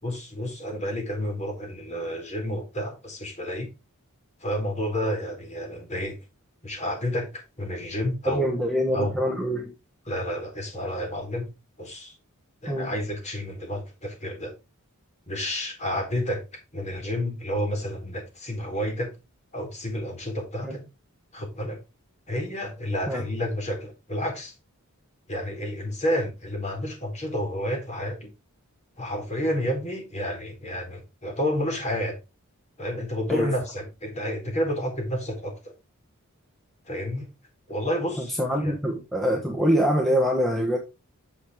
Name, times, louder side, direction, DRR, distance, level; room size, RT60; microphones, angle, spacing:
voice 1, 0.0-3.7 4.4-6.2 6.6-7.3 7.6-8.5 8.9-9.1 10.1-11.5 11.8-12.1 12.6-14.5 15.3-16.4 16.7-19.1 19.5-20.8 21.3-21.8 22.3-24.5 25.3-28.3 29.0-32.2 32.8-35.7 36.9-37.3 37.7-38.7, equal, 30° left, 4.1 m, -30 dB
voice 2, 8.2-9.7 12.7-13.0 20.6-20.8 23.1-23.2 33.3-33.5 38.2-40.8, equal, ahead, 1.2 m, -25 dB
9.5 x 6.6 x 3.6 m
head